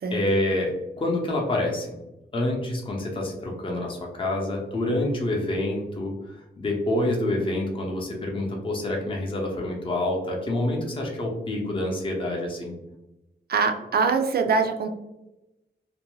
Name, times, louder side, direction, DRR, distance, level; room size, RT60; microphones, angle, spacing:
voice 1, 0.1-1.9 2.3-12.8, left 1 dB, 30° left, -1 dB, 0.6 m, -27 dB
voice 2, 13.5-14.9, right 5 dB, 60° right, 6 dB, 0.4 m, -23 dB
2.5 x 2.1 x 3.0 m, 0.93 s
wide cardioid pair, 100°, 18 cm